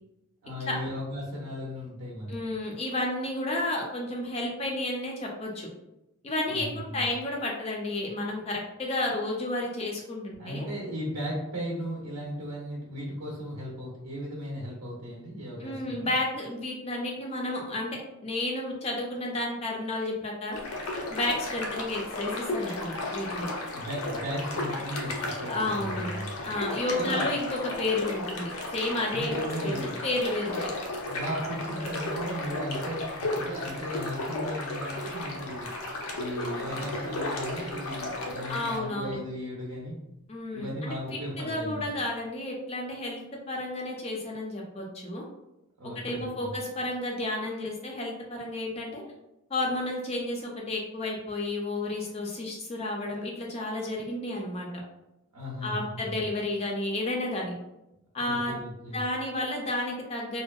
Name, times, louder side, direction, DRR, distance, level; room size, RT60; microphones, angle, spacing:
voice 1, 0.4-2.4 6.5-7.0 10.4-16.1 23.7-26.3 27.0-27.3 29.1-30.0 31.0-35.7 36.1-40.0 40.5-41.8 45.8-46.5 55.3-56.2 58.2-59.0, equal, 75° right, -4 dB, 0.6 m, -36 dB
voice 2, 2.3-5.7 6.2-10.7 15.6-20.6 21.1-23.5 25.5-26.1 26.4-29.3 29.6-30.7 38.5-39.2 40.3-45.2 46.0-49.0 49.5-54.8 55.6-57.5 58.1-58.6 58.9-60.4, left 2 dB, 30° left, -1 dB, 0.3 m, -31 dB
sound 1, 20.5-38.8, left 2 dB, 90° left, 0.5 m, -34 dB
Sink (filling or washing), 36.5-38.5 38.8-39.1 39.5-39.6, equal, 30° right, 0.6 m, -49 dB
2.6 x 2.1 x 2.2 m, 0.89 s
head